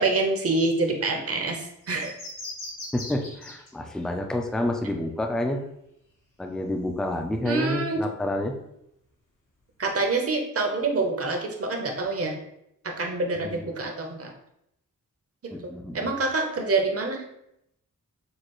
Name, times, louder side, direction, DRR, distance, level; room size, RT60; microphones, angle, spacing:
voice 1, 0.0-2.1 7.4-8.0 9.8-12.4 12.8-14.3 15.6-17.2, right 3 dB, 45° right, 2 dB, 0.7 m, -26 dB
sound 1, 1.8-3.7 4.0-4.1, left 2 dB, 75° left, 1.6 m, -39 dB
voice 2, 2.9-5.7 6.4-8.6 13.4-13.6 15.5-16.2, left 1 dB, ahead, 4 dB, 0.3 m, -29 dB
6.5 x 2.4 x 3.0 m, 0.78 s
wide cardioid pair, 155°, 32 cm